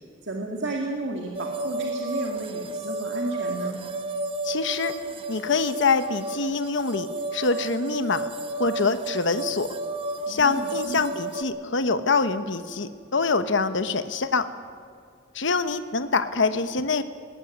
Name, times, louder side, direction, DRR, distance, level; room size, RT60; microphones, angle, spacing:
voice 1, 0.2-3.8 10.3-11.1, right 2 dB, 60° right, 1 dB, 2.2 m, -33 dB
sound 1, 1.3-11.4, right 2 dB, 25° right, 1.1 m, -32 dB
voice 2, 4.4-4.9 5.3-7.1 7.3-8.3 8.6-9.7 10.3-14.4 15.3-17.0, left 4 dB, 65° left, 10 dB, 1.1 m, -25 dB
20.0 x 18.5 x 9.5 m, 2.2 s
head